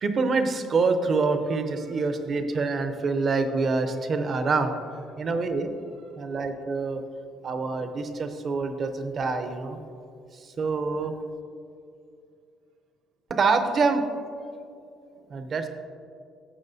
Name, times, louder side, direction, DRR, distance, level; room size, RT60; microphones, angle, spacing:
voice 1, 0.0-4.8 5.2-5.7 6.2-7.0 7.4-9.8 10.3-11.1 13.3-14.1 15.3-15.7, right 4 dB, 35° right, 7 dB, 0.6 m, -26 dB
voice 2, 5.1-5.4 5.9-6.3 7.0-7.5 9.8-10.1 14.7-15.4, right 4 dB, 55° right, 4 dB, 1.0 m, -60 dB
13.0 x 7.1 x 2.7 m, 2.4 s
cardioid pair, 160°, 0 cm